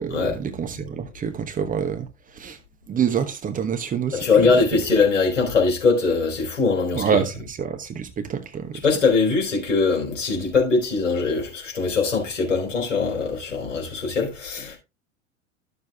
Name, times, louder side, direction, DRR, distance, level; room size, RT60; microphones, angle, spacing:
voice 1, 0.0-2.1 2.3-2.6 2.9-4.5 6.9-8.8, right 7 dB, 20° right, 1.1 m, -27 dB
voice 2, 4.1-7.2 8.8-14.8, left 4 dB, 75° left, 4.3 m, -21 dB
13.5 x 6.9 x 2.4 m
figure-of-eight pair, 80°, 37 cm